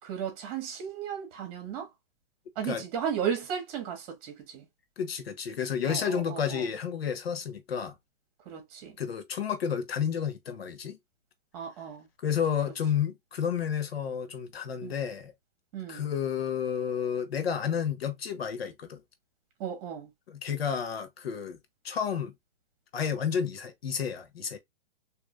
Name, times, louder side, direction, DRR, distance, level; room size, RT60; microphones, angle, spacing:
voice 1, 0.0-1.9 2.5-4.7 5.9-6.7 8.4-9.0 11.5-12.1 14.8-14.9 15.7-16.1 19.6-20.1, right 8 dB, 40° right, 1.7 m, -35 dB
voice 2, 5.0-7.9 9.0-11.0 12.2-15.3 15.9-19.0 20.3-21.6 21.8-22.3 22.9-24.6, left 7 dB, 80° left, 1.3 m, -31 dB
3.7 x 3.1 x 2.4 m
hypercardioid pair, 145°, 30 cm